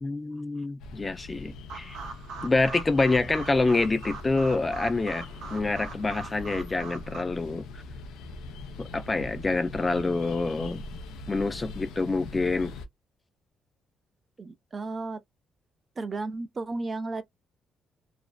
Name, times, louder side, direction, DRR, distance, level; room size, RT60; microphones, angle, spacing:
voice 1, 0.0-2.0 2.4-7.8 8.8-10.8 11.3-12.7, left 3 dB, 25° left, 0.5 m, -27 dB
sound 1, 0.8-12.9, left 2 dB, 85° left, 0.4 m, -42 dB
sound 2, 1.7-7.2, right 4 dB, 80° right, 0.6 m, -42 dB
voice 2, 14.4-15.2 16.0-17.2, right 3 dB, 35° right, 0.4 m, -33 dB
2.5 x 2.1 x 2.3 m
cardioid pair, 90°, 0 cm